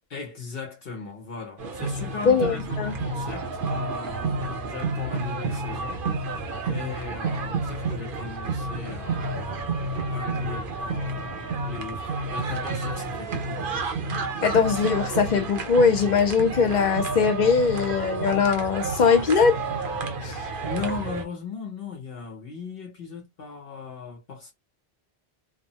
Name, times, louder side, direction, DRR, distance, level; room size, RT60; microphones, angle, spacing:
voice 1, 0.1-6.4 6.6-9.8 10.1-13.9 20.6-24.5, left 5 dB, 65° left, 1.0 m, -38 dB
sound 1, 1.6-21.2, right 3 dB, 60° right, 0.8 m, -30 dB
voice 2, 2.3-2.9 14.4-19.6 20.2-20.5, left 5 dB, 50° left, 0.7 m, -21 dB
3.0 x 2.0 x 2.7 m
omnidirectional pair, 1.1 m